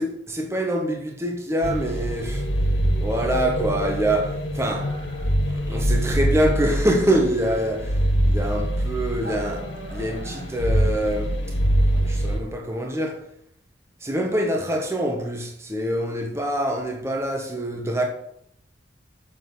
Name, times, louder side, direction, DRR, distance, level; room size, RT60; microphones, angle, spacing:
voice 1, 0.0-2.4 3.0-4.9 5.5-11.4 11.9-13.3 14.0-18.0, right 1 dB, 15° right, 1.2 m, -25 dB
sound 1, 1.6-12.4, equal, 80° left, 1.7 m, -24 dB
sound 2, 4.6-13.1, right 1 dB, 50° right, 2.3 m, -43 dB
7.4 x 6.3 x 7.9 m
head